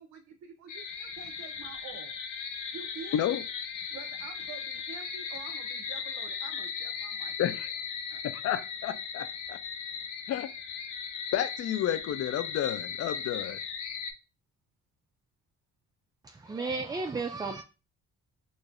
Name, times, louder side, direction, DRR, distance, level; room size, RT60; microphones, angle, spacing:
voice 1, 0.0-2.2 2.5-3.4 3.9-7.5 8.1-8.3, right 6 dB, 65° right, 5 dB, 0.6 m, -48 dB
sound 1, 0.7-14.1, left 6 dB, 90° left, 0.9 m, -38 dB
voice 2, 3.1-3.4 7.4-7.7 8.3-9.6 10.3-10.5 11.3-13.6, left 11 dB, 55° left, 12 dB, 0.5 m, -31 dB
voice 3, 16.2-17.6, right 3 dB, 15° right, 8 dB, 0.3 m, -33 dB
4.7 x 2.6 x 2.5 m, 0.33 s
cardioid pair, 90°, 30 cm